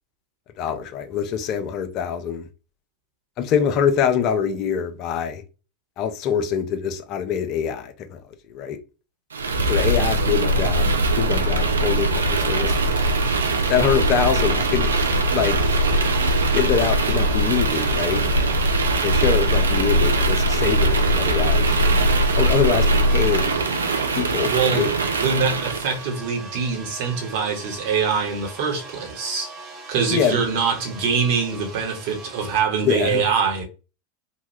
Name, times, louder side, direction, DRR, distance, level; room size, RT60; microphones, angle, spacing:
voice 1, 0.6-2.5 3.4-5.4 6.0-8.2 8.5-8.8 9.7-12.8 13.7-14.9 15.3-15.6 16.5-18.2 19.0-21.7 22.4-23.6 24.2-24.9 30.1-30.4 32.8-33.2, left 7 dB, 50° left, 0.6 m, -24 dB
sound 1, 9.3-26.0, right 1 dB, 85° right, 0.4 m, -21 dB
sound 2, 12.7-32.6, right 3 dB, 45° right, 0.9 m, -40 dB
voice 2, 24.4-24.9 25.1-29.5 29.9-33.6, right 5 dB, 60° right, 1.1 m, -24 dB
2.8 x 2.2 x 3.1 m
hypercardioid pair, 90°, 0 cm